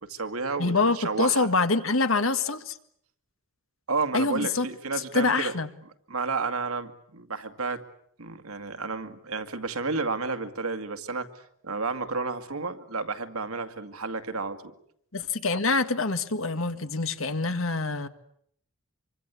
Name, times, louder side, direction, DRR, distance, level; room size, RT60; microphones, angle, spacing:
voice 1, 0.0-1.5 3.9-5.5 6.1-7.8 8.2-11.3 11.6-14.7, right 4 dB, 85° right, 9 dB, 2.2 m, -31 dB
voice 2, 0.6-2.8 4.1-4.7 5.1-5.7 15.1-18.1, left 3 dB, 70° left, 10 dB, 1.7 m, -25 dB
26.5 x 24.5 x 8.4 m, 0.68 s
head